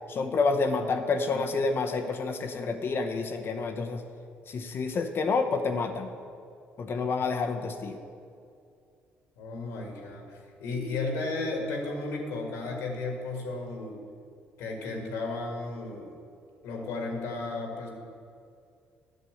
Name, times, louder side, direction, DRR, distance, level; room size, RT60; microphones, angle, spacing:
voice 1, 0.1-4.0 4.5-6.1 6.8-8.0, left 4 dB, 50° left, 5 dB, 0.9 m, -28 dB
voice 2, 9.4-14.0 14.6-16.1 16.6-17.9, left 3 dB, 85° left, 1 dB, 1.8 m, -34 dB
8.5 x 6.8 x 7.8 m, 2.4 s
supercardioid pair, 70°, 5 cm